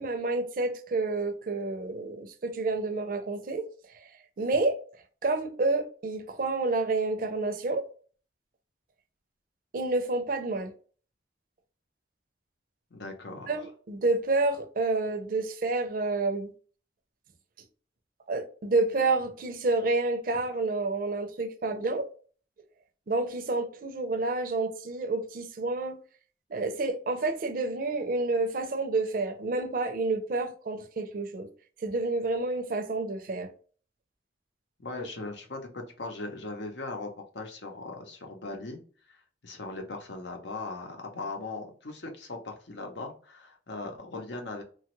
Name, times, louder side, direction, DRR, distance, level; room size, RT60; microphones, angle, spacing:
voice 1, 0.0-3.7 3.9-4.1 4.4-4.8 5.2-7.8 9.7-10.7 13.5-16.5 18.3-22.1 23.1-26.0 26.5-31.5 31.8-33.5, right 3 dB, 50° right, 0.5 m, -29 dB
voice 2, 12.9-13.5 34.8-37.1 37.3-38.8 39.1-39.2 39.4-44.6, left 3 dB, 80° left, 0.8 m, -39 dB
3.0 x 2.3 x 3.0 m
head